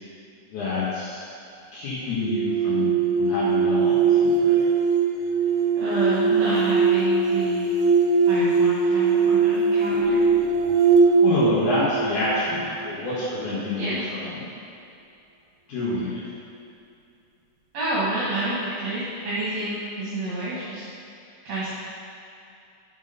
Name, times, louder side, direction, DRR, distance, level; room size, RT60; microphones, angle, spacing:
voice 1, 0.5-1.2 1.7-4.6 10.9-14.3 15.7-16.2, left 3 dB, 75° left, -11 dB, 3.2 m, -28 dB
sound 1, 2.2-13.2, right 4 dB, 85° right, 2.2 m, -21 dB
voice 2, 5.8-7.9 8.2-10.2 13.8-14.1 17.7-20.8 21.4-21.7, right 2 dB, 60° right, -10 dB, 3.1 m, -29 dB
11.0 x 6.2 x 5.3 m, 2.6 s
omnidirectional pair, 3.6 m